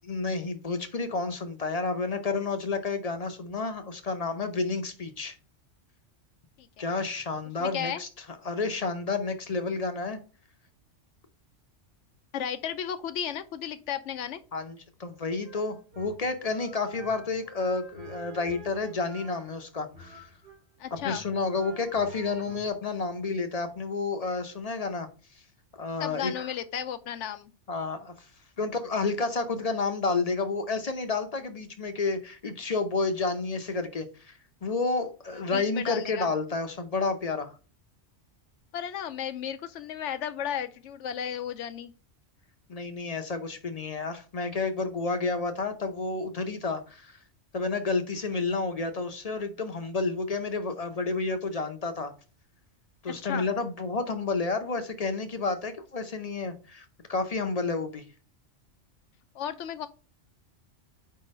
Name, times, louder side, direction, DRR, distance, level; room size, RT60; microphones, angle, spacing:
voice 1, 0.1-5.4 6.8-8.1 8.4-10.2 14.5-20.3 21.0-25.1 25.7-26.5 27.7-28.3 28.6-37.5 42.7-47.2 47.5-52.1 53.0-58.0, left 3 dB, 40° left, 0.6 m, -30 dB
voice 2, 7.6-8.0 12.3-14.4 20.8-21.3 26.0-27.5 35.5-36.3 38.7-41.9 53.2-53.5 59.3-59.9, left 9 dB, 75° left, 0.9 m, -34 dB
sound 1, 15.4-20.6 20.9-22.7, right 2 dB, 55° right, 1.1 m, -48 dB
4.9 x 3.7 x 5.2 m
omnidirectional pair, 1.2 m